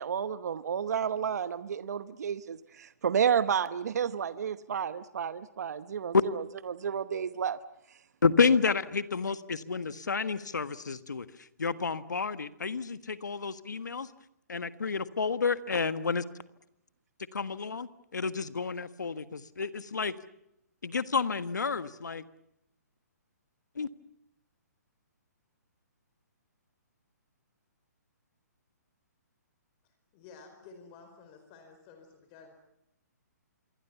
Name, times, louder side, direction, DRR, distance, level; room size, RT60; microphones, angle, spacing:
voice 1, 0.0-7.6, right 7 dB, 65° right, 14 dB, 1.0 m, -31 dB
voice 2, 8.2-11.3 11.6-14.1 14.5-16.2 17.3-20.1 20.8-22.2 23.8-23.9, left 5 dB, 85° left, 12 dB, 1.6 m, -30 dB
voice 3, 29.8-32.5, left 4 dB, 30° left, 7 dB, 4.6 m, -53 dB
27.0 x 23.5 x 7.1 m, 0.82 s
hypercardioid pair, 145°, 9 cm